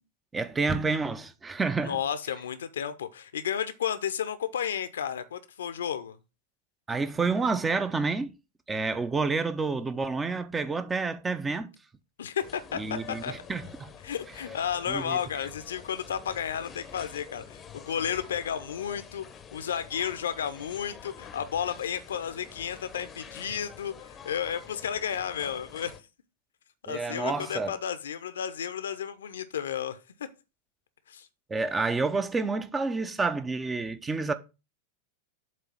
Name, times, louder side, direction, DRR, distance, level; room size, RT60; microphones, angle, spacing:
voice 1, 0.3-2.0 6.9-8.3 8.7-11.7 12.7-13.9 14.9-15.2 26.9-27.7 31.5-34.3, right 4 dB, 15° right, 0.6 m, -29 dB
voice 2, 1.8-6.2 12.2-13.3 14.0-19.3 19.5-25.9 26.9-30.0 31.1-31.3, left 8 dB, 65° left, 0.7 m, -32 dB
sound 1, 12.4-26.0, left 7 dB, 25° left, 0.8 m, -47 dB
7.6 x 3.2 x 6.0 m
figure-of-eight pair, 90°, 0 cm